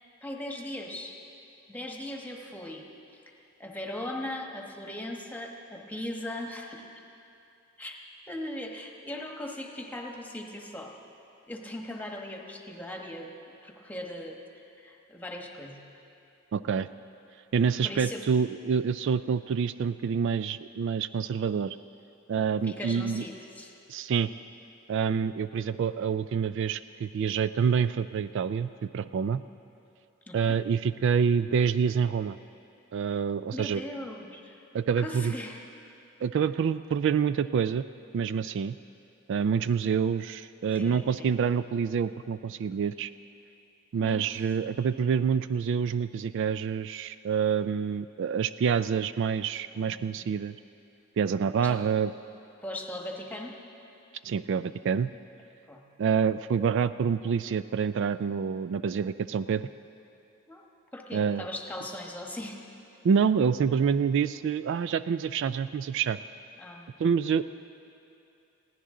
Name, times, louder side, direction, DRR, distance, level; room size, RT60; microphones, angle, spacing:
voice 1, 0.2-1.2 1.7-3.2 3.6-6.9 7.8-8.0 8.3-10.9 11.5-14.4 14.8-15.8 17.8-18.3 22.6-23.7 30.3-30.6 33.5-34.6 35.0-35.6 40.7-41.3 44.0-44.5 49.7-50.0 51.6-51.8 52.6-53.6 55.7-55.8 60.5-60.6 60.9-62.6 66.6-66.9, left 1 dB, 10° left, 1 dB, 1.2 m, -39 dB
voice 2, 16.5-16.9 17.5-21.8 22.3-23.2 23.9-24.3 24.9-29.4 30.3-32.4 32.9-33.8 34.7-35.3 36.2-37.9 38.1-38.8 39.3-43.1 43.9-50.5 51.2-52.1 54.2-55.1 56.0-59.7 61.1-61.5 63.0-66.2 67.0-67.4, right 6 dB, 60° right, 13 dB, 0.3 m, -27 dB
21.0 x 16.0 x 3.8 m, 2.7 s
head